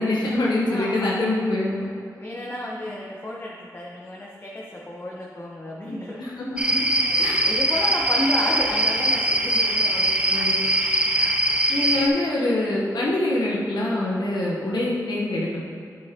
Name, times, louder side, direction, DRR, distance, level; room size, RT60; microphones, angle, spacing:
voice 1, 0.0-1.9 6.2-6.9 7.2-7.5 10.3-10.5 11.7-15.6, left 2 dB, 85° left, -5 dB, 1.1 m, -24 dB
voice 2, 0.7-1.4 2.1-6.2 7.0-10.6 11.4-11.6, left 1 dB, 30° left, -4 dB, 1.1 m, -32 dB
sound 1, 6.6-12.1, right 1 dB, 15° right, 0.8 m, -22 dB
8.6 x 7.8 x 2.9 m, 2.3 s
cardioid pair, 45°, 7 cm